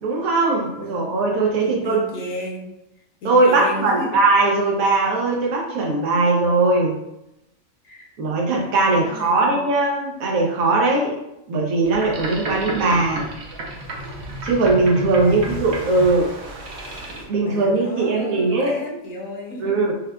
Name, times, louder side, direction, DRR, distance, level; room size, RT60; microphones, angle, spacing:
voice 1, 0.0-2.0 3.2-7.0 8.2-11.2 11.5-13.2 14.4-16.3 17.3-18.7 19.6-19.9, right 3 dB, 85° right, -1 dB, 1.2 m, -19 dB
voice 2, 1.6-2.6 3.2-4.1 7.8-8.1 9.0-9.5 15.2-16.2 17.4-19.8, left 1 dB, 75° left, -2 dB, 1.2 m, -34 dB
Boat Water vehicle, 11.8-17.2, right 1 dB, 60° right, 0.9 m, -32 dB
5.1 x 2.2 x 2.3 m, 0.86 s
omnidirectional pair, 1.4 m